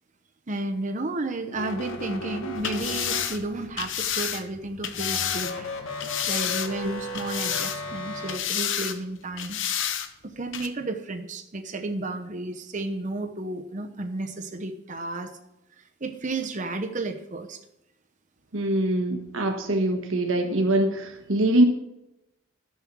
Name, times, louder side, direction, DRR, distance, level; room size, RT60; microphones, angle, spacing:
voice 1, 0.5-6.0 6.3-9.6 10.2-15.3 15.8-17.6, right 2 dB, 35° right, 5 dB, 0.8 m, -32 dB
sound 1, 1.5-3.7 4.9-8.4, left 1 dB, 80° left, 1.6 m, -35 dB
sound 2, 2.5-5.5 6.0-6.9 7.1-8.0 8.3-9.0 9.4-10.1 10.5-10.7, left 9 dB, 65° left, 0.9 m, -30 dB
voice 2, 18.5-21.6, right 1 dB, 75° right, 4 dB, 1.3 m, -23 dB
12.0 x 7.2 x 6.0 m, 0.87 s
head